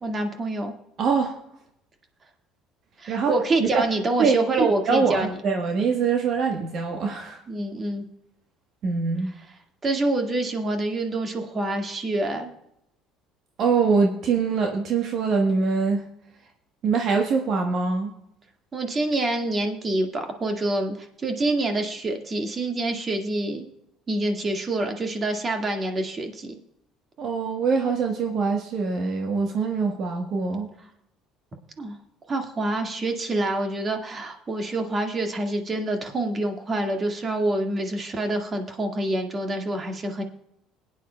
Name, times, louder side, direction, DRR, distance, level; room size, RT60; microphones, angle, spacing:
voice 1, 0.0-0.7 3.0-5.4 7.5-8.1 9.8-12.5 18.7-23.7 24.1-26.5 31.8-32.0 32.3-40.2, right 2 dB, 35° right, 4 dB, 1.8 m, -26 dB
voice 2, 1.0-1.4 3.1-3.3 3.6-3.8 4.2-7.4 8.8-9.3 13.6-16.0 16.8-18.1 27.2-30.7, right 5 dB, 55° right, 3 dB, 1.2 m, -24 dB
21.0 x 9.3 x 2.3 m, 0.80 s
supercardioid pair, 80°, 0 cm